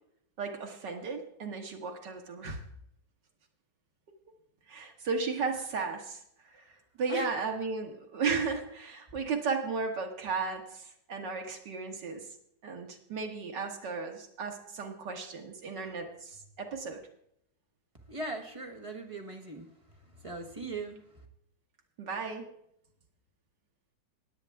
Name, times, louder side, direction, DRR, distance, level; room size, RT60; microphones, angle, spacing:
voice 1, 0.4-2.6 4.7-6.2 6.5-6.7 7.0-12.3 12.6-17.0 22.0-22.5, right 4 dB, 75° right, 2 dB, 2.2 m, -35 dB
voice 2, 18.1-21.2, right 1 dB, 20° right, 3 dB, 1.1 m, -40 dB
16.5 x 9.8 x 3.5 m, 0.73 s
omnidirectional pair, 1.9 m